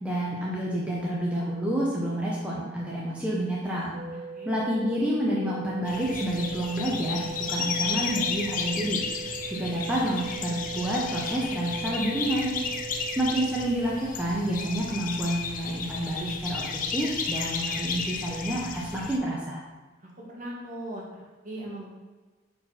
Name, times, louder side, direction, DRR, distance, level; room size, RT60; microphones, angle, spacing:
voice 1, 0.0-3.9 4.5-9.0 9.5-12.5 13.2-19.6, right 1 dB, 5° right, -5 dB, 0.8 m, -29 dB
sound 1, 3.9-14.0, right 6 dB, 80° right, 0.8 m, -40 dB
voice 2, 4.1-4.5 20.0-21.9, right 1 dB, 45° right, -3 dB, 1.5 m, -40 dB
sound 2, 5.9-19.2, left 5 dB, 45° left, 0.5 m, -33 dB
5.9 x 4.5 x 4.3 m, 1.3 s
head